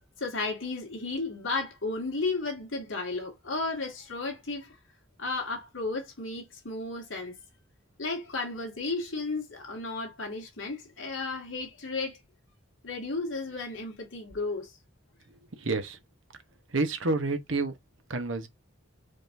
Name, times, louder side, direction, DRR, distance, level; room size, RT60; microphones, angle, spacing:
voice 1, 0.2-4.8 5.2-7.4 8.0-12.2 12.8-14.7, left 3 dB, 70° left, 2.2 m, -33 dB
voice 2, 15.5-16.0 16.7-17.7 18.1-18.5, right 3 dB, 65° right, 1.1 m, -29 dB
5.1 x 3.8 x 2.7 m
head